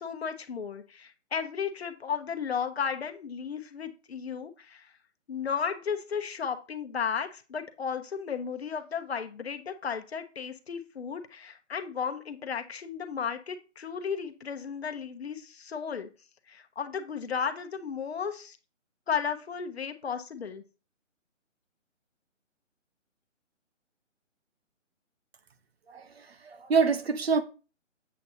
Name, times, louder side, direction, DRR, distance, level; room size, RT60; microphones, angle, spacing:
voice 1, 0.0-4.9 5.3-16.1 16.5-18.6 19.1-20.6, left 6 dB, 55° left, 1.2 m, -34 dB
voice 2, 25.9-27.4, right 5 dB, 50° right, 1.1 m, -26 dB
8.1 x 7.7 x 2.8 m
figure-of-eight pair, 150°, 38 cm